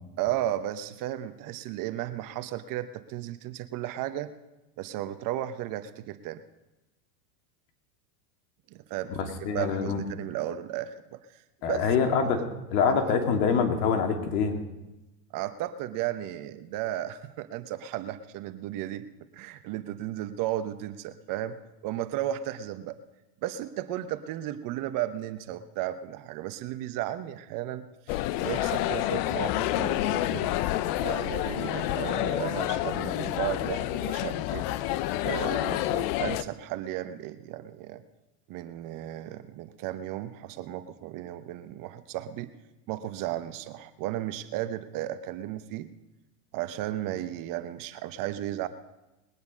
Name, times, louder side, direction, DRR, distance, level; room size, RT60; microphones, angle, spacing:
voice 1, 0.2-4.3 4.8-6.4 8.7-11.9 12.2-12.5 12.9-13.1 15.3-19.1 19.3-23.0 23.4-30.5 31.0-34.7 35.2-38.0 38.5-42.5 42.9-45.9 46.5-48.7, right 13 dB, 45° right, 11 dB, 0.9 m, -34 dB
voice 2, 9.2-10.0 11.6-12.4 12.7-14.6, left 6 dB, 65° left, 5 dB, 2.3 m, -25 dB
sound 1, 28.1-36.4, left 14 dB, 45° left, 0.6 m, -28 dB
20.5 x 9.4 x 5.2 m, 1.0 s
hypercardioid pair, 110°, 47 cm